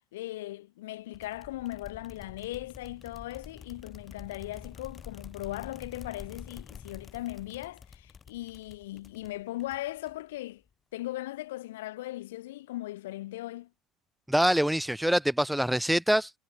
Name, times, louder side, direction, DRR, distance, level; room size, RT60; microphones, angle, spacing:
voice 1, 0.0-10.6 10.9-13.7, left 16 dB, 70° left, 2.0 m, -38 dB
sound 1, 1.1-10.4, left 6 dB, 35° left, 7.3 m, -48 dB
voice 2, 14.3-16.3, equal, 5° right, 0.7 m, -25 dB
figure-of-eight pair, 60°, 0 cm